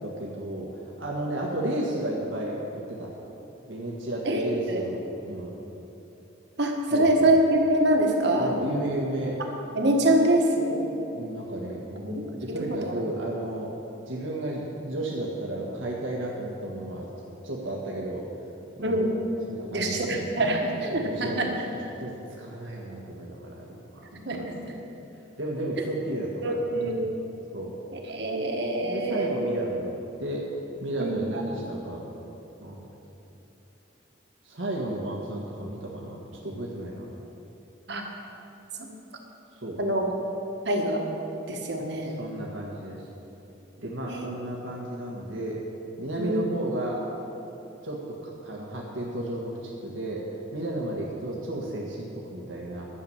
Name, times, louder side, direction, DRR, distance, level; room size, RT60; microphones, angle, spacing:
voice 1, 0.0-0.7 1.0-3.1 3.7-5.6 6.9-7.3 8.3-9.4 11.1-13.7 14.1-17.1 17.4-18.3 18.8-19.0 19.5-20.1 20.8-21.7 22.0-24.5 25.4-27.1 27.5-27.7 28.8-30.5 30.8-32.0 32.6-32.8 34.4-37.1 39.6-39.8 42.0-43.0 43.8-45.6 46.0-47.0 47.8-50.2 50.5-52.9, right 1 dB, 85° right, -4 dB, 1.6 m, -33 dB
voice 2, 4.2-4.8 6.6-8.6 9.7-10.8 12.0-13.0 18.8-19.2 19.7-21.5 24.2-24.5 26.4-27.1 27.9-29.3 31.0-31.4 37.9-38.1 39.8-40.1 40.6-41.0 41.5-42.2 44.1-44.3 46.2-46.4, right 1 dB, 60° right, 1 dB, 1.6 m, -25 dB
11.5 x 7.0 x 8.7 m, 3.0 s
head